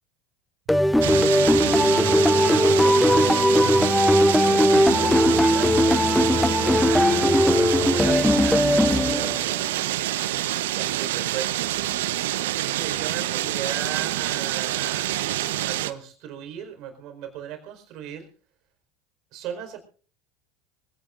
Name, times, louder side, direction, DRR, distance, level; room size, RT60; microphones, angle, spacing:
sound 1, 0.7-9.6, left 1 dB, 5° left, 0.8 m, -19 dB
sound 2, 1.0-15.9, right 14 dB, 75° right, 1.1 m, -27 dB
voice 1, 1.8-3.4 4.2-10.3 10.7-11.7 12.0-15.1 15.6-18.3 19.3-19.8, right 9 dB, 55° right, 6 dB, 4.9 m, -37 dB
24.5 x 16.5 x 2.6 m, 0.42 s
hypercardioid pair, 75°, 0 cm